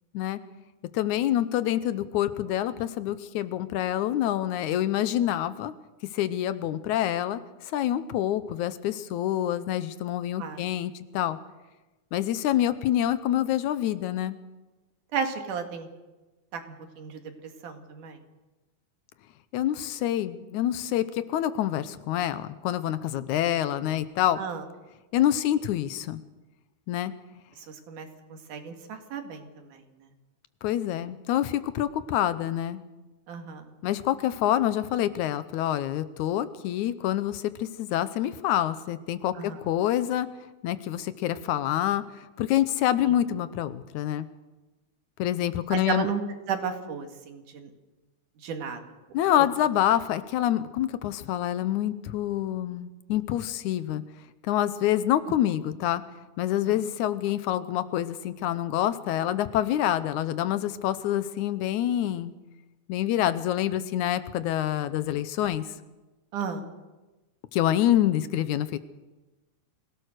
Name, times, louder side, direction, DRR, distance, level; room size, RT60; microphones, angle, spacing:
voice 1, 0.9-5.7 6.1-11.4 12.1-14.4 19.5-24.4 25.1-26.2 26.9-27.1 30.6-32.8 33.8-40.3 40.6-42.0 42.4-44.3 45.2-46.1 49.1-54.0 54.4-56.0 56.4-62.3 62.9-65.7 67.5-68.8, left 12 dB, 80° left, 13 dB, 2.2 m, -26 dB
voice 2, 15.1-15.9 16.5-16.6 17.0-17.2 17.6-18.2 24.4-24.6 27.6-29.8 33.3-33.7 39.4-39.6 43.1-43.2 45.7-46.2 46.5-47.7 48.4-48.8 66.3-66.7, right 6 dB, 85° right, 5 dB, 3.5 m, -33 dB
25.0 x 17.0 x 6.6 m, 1.1 s
omnidirectional pair, 3.5 m